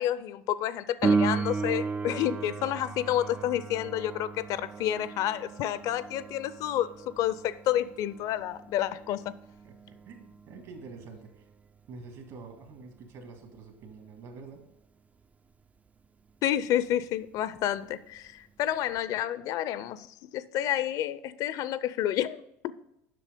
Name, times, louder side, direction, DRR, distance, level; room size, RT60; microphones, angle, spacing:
voice 1, 0.0-9.3 16.4-22.4, left 12 dB, 55° left, 0.5 m, -30 dB
Piano, 1.0-11.4 19.0-19.1, right 4 dB, 20° right, 0.3 m, -34 dB
voice 2, 10.1-11.5 11.9-14.7, right 4 dB, 55° right, 2.0 m, -46 dB
7.6 x 5.9 x 5.2 m
supercardioid pair, 95°, 7 cm